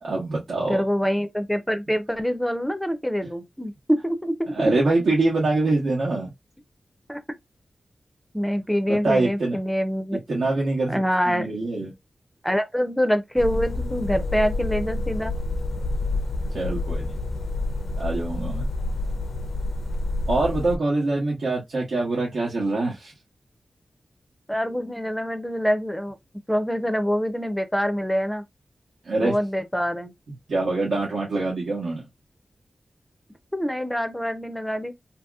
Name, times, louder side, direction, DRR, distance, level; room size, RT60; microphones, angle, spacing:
voice 1, 0.0-0.9 4.5-6.3 8.9-9.6 10.1-11.9 16.5-17.2 18.0-18.7 20.3-23.1 29.0-29.3 30.5-32.0, right 2 dB, 90° right, 1.0 m, -24 dB
voice 2, 0.7-4.7 7.1-7.2 8.3-10.4 10.9-11.5 12.4-15.3 24.5-26.2 26.5-28.4 29.2-30.1 33.5-34.9, equal, 5° left, 0.4 m, -25 dB
sound 1, 13.4-20.8, left 2 dB, 85° left, 0.5 m, -28 dB
2.8 x 2.8 x 2.2 m
wide cardioid pair, 115°, 0 cm